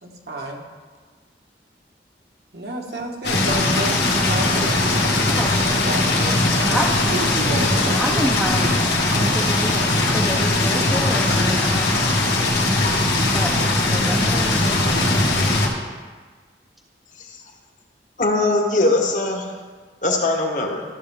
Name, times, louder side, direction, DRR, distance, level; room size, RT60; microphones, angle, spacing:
voice 1, 0.0-0.6 2.5-5.4 5.9-6.8 7.1-8.3, right 1 dB, 70° right, 0 dB, 1.3 m, -31 dB
sound 1, 3.2-15.7, left 2 dB, 75° left, 1.6 m, -20 dB
voice 2, 7.9-8.8 9.2-9.7 10.1-12.1 13.2-13.5 13.8-15.2, equal, ahead, -2 dB, 0.5 m, -28 dB
voice 3, 18.2-19.5 20.0-20.8, left 2 dB, 45° left, 1 dB, 1.1 m, -21 dB
14.0 x 6.4 x 3.5 m, 1.4 s
head